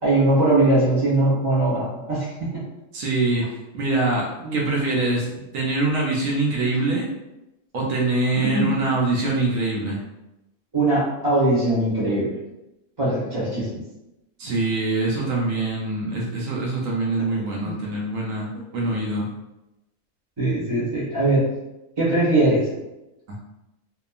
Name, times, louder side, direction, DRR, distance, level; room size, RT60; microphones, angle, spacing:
voice 1, 0.0-2.6 4.4-4.6 8.4-8.7 10.7-12.3 13.0-13.8 17.6-17.8 20.4-21.5 22.0-22.7, right 2 dB, 20° right, -7 dB, 0.8 m, -21 dB
voice 2, 2.9-5.3 5.5-7.1 7.7-10.0 14.4-19.3 23.3-23.4, right 2 dB, 75° right, -3 dB, 1.0 m, -24 dB
2.8 x 2.3 x 2.3 m, 0.95 s
omnidirectional pair, 1.5 m